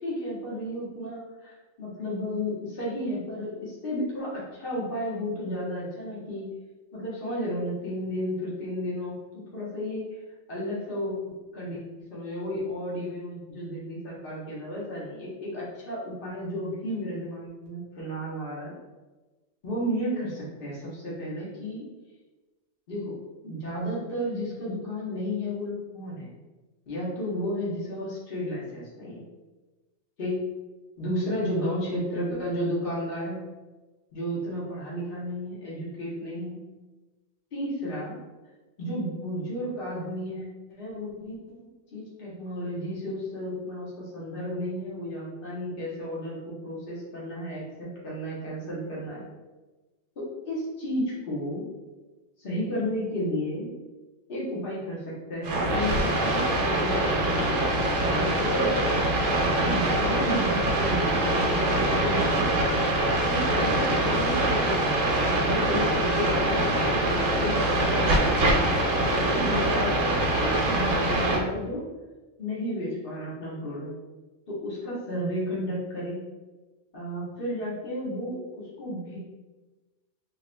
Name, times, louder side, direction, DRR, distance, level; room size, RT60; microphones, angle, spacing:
voice 1, 0.0-6.5 6.9-9.2 9.5-10.1 10.5-11.8 12.1-18.7 19.6-21.8 22.9-23.2 23.4-26.3 26.9-29.2 30.2-30.4 31.0-33.4 34.1-36.6 37.5-38.1 38.8-40.5 40.8-49.2 50.2-51.7 52.4-53.7 54.3-57.1 57.4-59.0 59.5-62.3 63.3-64.8 65.2-68.6 69.1-70.1 70.4-71.8 72.4-73.9 74.5-76.2 76.9-79.2, equal, 50° left, -6 dB, 1.3 m, -33 dB
sound 1, 55.4-71.4, right 1 dB, 90° right, 1.1 m, -24 dB
4.6 x 3.0 x 2.2 m, 1.2 s
omnidirectional pair, 1.3 m